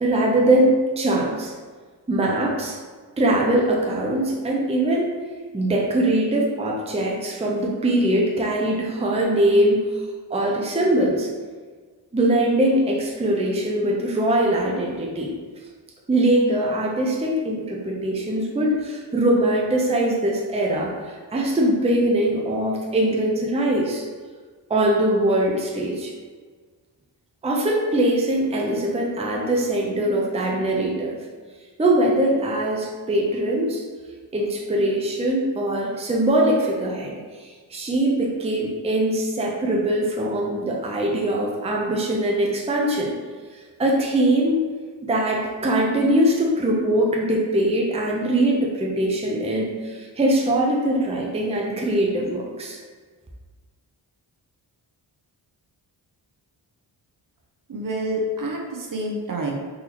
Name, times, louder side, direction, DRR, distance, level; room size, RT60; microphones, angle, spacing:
voice 1, 0.0-1.5 2.1-2.8 3.2-5.1 5.5-9.8 10.3-11.3 12.1-15.3 16.1-24.0 24.7-26.1 27.4-31.2 31.8-33.8 34.3-43.1 43.5-44.6 45.0-52.8, right 1 dB, 15° right, -2 dB, 0.6 m, -22 dB
voice 2, 57.7-59.5, right 1 dB, 45° right, 0 dB, 0.8 m, -28 dB
4.0 x 2.7 x 2.9 m, 1.5 s
cardioid pair, 50°, 46 cm